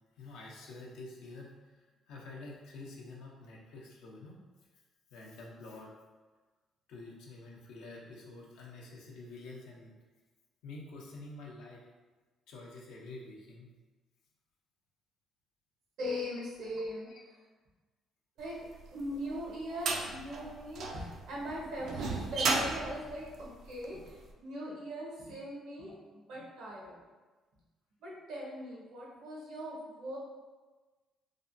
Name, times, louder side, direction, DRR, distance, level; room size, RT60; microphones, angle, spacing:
voice 1, 0.2-1.7 2.1-4.4 5.1-5.9 6.9-9.9 10.6-11.8 12.5-13.7 17.0-17.2, left 2 dB, 85° left, -2 dB, 0.6 m, -48 dB
voice 2, 16.0-17.1 18.4-18.6 18.9-27.0 28.0-30.2, equal, 80° right, -5 dB, 1.0 m, -40 dB
sound 1, 18.8-24.1, right 3 dB, 65° right, 0.3 m, -34 dB
3.3 x 2.1 x 2.6 m, 1.3 s
cardioid pair, 95°, 0 cm